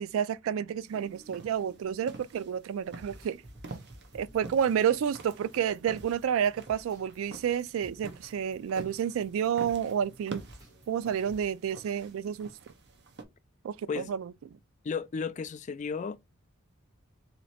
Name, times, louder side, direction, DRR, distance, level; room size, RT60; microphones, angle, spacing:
voice 1, 0.0-3.4 4.1-10.4 10.9-12.5 13.6-14.3, right 8 dB, 70° right, 0.3 m, -30 dB
sound 1, 0.9-13.2, right 3 dB, 55° right, 0.7 m, -48 dB
sound 2, 2.8-11.4, right 1 dB, 15° right, 1.3 m, -54 dB
voice 2, 14.8-16.2, left 5 dB, 35° left, 0.3 m, -33 dB
3.1 x 2.9 x 4.2 m
head